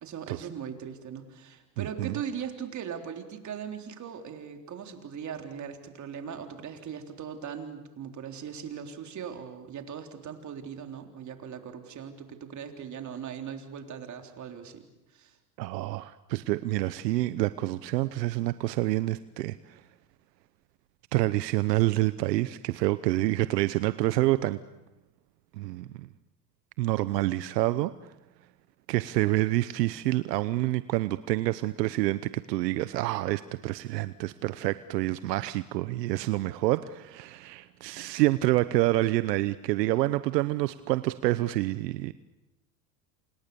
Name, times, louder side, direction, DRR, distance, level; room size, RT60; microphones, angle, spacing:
voice 1, 0.0-14.8 15.1-15.4, right 8 dB, 35° right, 4 dB, 3.8 m, -39 dB
voice 2, 1.8-2.1 15.6-19.8 21.1-24.6 25.6-26.1 26.8-27.9 28.9-42.1, right 17 dB, 80° right, 14 dB, 1.0 m, -27 dB
28.5 x 28.0 x 7.0 m, 1.0 s
supercardioid pair, 105°, 48 cm